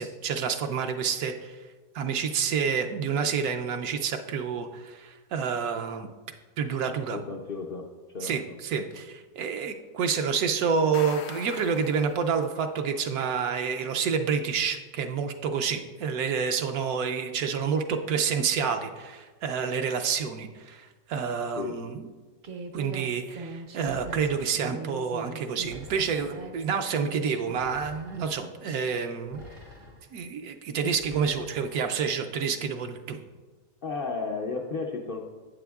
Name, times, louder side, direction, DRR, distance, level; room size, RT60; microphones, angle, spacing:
voice 1, 0.0-1.6 1.9-6.1 6.6-7.2 8.2-22.0 22.7-29.4 30.1-33.2, right 6 dB, 75° right, 5 dB, 1.0 m, -28 dB
voice 2, 7.1-8.5 21.6-21.8 33.8-35.3, left 4 dB, 75° left, 1 dB, 0.5 m, -34 dB
sound 1, 10.7-12.7, left 8 dB, 90° left, 1.2 m, -43 dB
Human voice, 22.4-27.6, right 3 dB, 55° right, 0.6 m, -42 dB
sound 2, 23.8-24.7 25.6-26.5 27.5-28.4 29.3-30.1 30.9-31.9, left 1 dB, 90° right, 3.6 m, -48 dB
11.5 x 8.3 x 2.3 m, 1.3 s
omnidirectional pair, 1.7 m